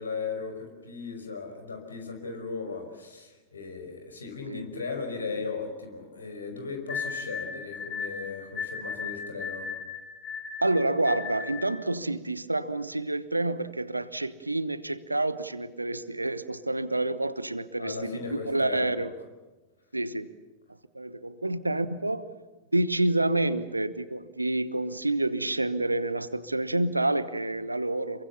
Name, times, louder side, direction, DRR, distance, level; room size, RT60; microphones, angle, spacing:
voice 1, 0.0-9.7 17.8-19.1, left 4 dB, 75° left, 5 dB, 5.3 m, -37 dB
sound 1, 6.9-11.8, left 6 dB, 25° left, 7.1 m, -36 dB
voice 2, 10.6-19.1 19.9-20.3 20.9-22.3 22.7-28.2, right 2 dB, 85° right, 15 dB, 1.1 m, -28 dB
27.5 x 23.0 x 7.1 m, 1.2 s
figure-of-eight pair, 90°, 0 cm